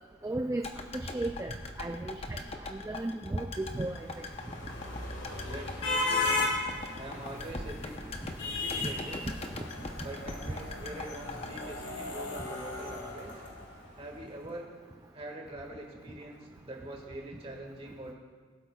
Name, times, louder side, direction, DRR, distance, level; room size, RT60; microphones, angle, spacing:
voice 1, 0.2-0.6 0.9-1.5 1.8-2.4 2.7-4.1 8.8-9.0, right 2 dB, 15° right, 4 dB, 0.3 m, -34 dB
sound 1, 0.6-12.8 13.1-13.2, left 3 dB, 35° left, 0.7 m, -42 dB
sound 2, 3.7-14.0, left 2 dB, 80° left, 1.7 m, -36 dB
voice 2, 5.4-6.5 7.0-7.9 8.5-9.3 10.0-13.3 14.0-14.7 15.1-18.1, right 1 dB, 30° right, 0 dB, 1.7 m, -44 dB
19.5 x 8.3 x 2.3 m, 1.5 s
head